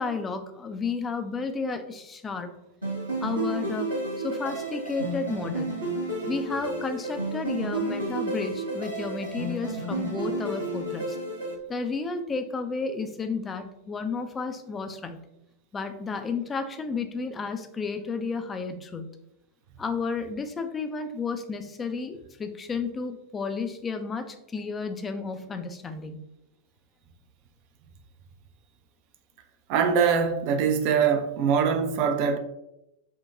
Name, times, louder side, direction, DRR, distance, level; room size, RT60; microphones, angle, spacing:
voice 1, 0.0-2.5 3.2-3.9 4.2-5.8 6.3-11.2 11.7-15.2 15.7-19.1 19.8-26.2, left 4 dB, 20° left, 0.4 m, -32 dB
sound 1, 2.8-11.5, right 2 dB, 80° right, 1.2 m, -31 dB
voice 2, 29.7-32.4, right 6 dB, 45° right, 0.4 m, -23 dB
4.4 x 2.2 x 2.4 m
figure-of-eight pair, 90°, 0 cm